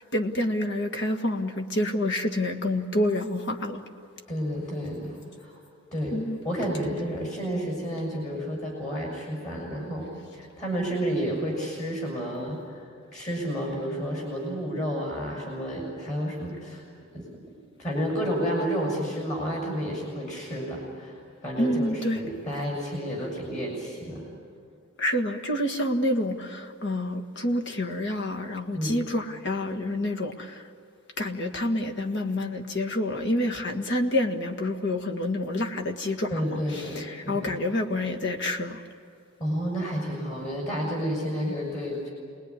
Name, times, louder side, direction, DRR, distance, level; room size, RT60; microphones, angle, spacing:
voice 1, 0.1-3.8 6.1-6.4 21.6-22.2 25.0-30.5 31.2-36.3 37.0-38.8, left 1 dB, 50° left, 4 dB, 1.7 m, -28 dB
voice 2, 4.3-5.6 5.8-6.2 6.4-12.8 13.1-16.8 17.1-17.4 17.8-24.2 28.7-29.0 36.3-37.6 39.4-42.1, equal, 30° left, -1 dB, 6.6 m, -31 dB
28.0 x 20.0 x 9.8 m, 2.3 s
head